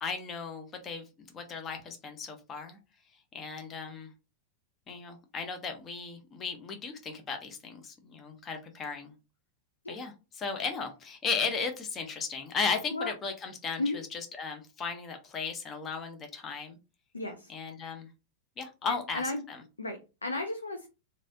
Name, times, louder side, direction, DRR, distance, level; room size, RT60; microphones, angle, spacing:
voice 1, 0.0-2.8 3.3-4.1 4.9-9.1 9.9-16.8 17.5-18.1 18.6-19.6, left 5 dB, 25° left, 5 dB, 0.7 m, -36 dB
voice 2, 17.1-17.5 18.9-19.4 19.8-20.9, left 2 dB, 80° left, 6 dB, 0.4 m, -34 dB
3.2 x 2.6 x 2.6 m, 0.29 s
figure-of-eight pair, 90°, 0 cm